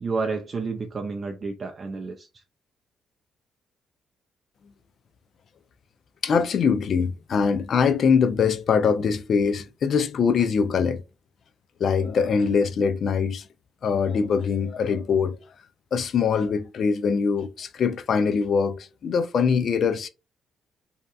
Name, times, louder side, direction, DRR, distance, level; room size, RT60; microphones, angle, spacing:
voice 1, 0.0-2.3, right 4 dB, 40° right, 0.4 m, -30 dB
voice 2, 6.2-11.0 11.8-13.5 13.8-15.4 15.9-20.1, left 6 dB, 55° left, 0.4 m, -23 dB
2.7 x 2.2 x 2.3 m
cardioid pair, 90°, 0 cm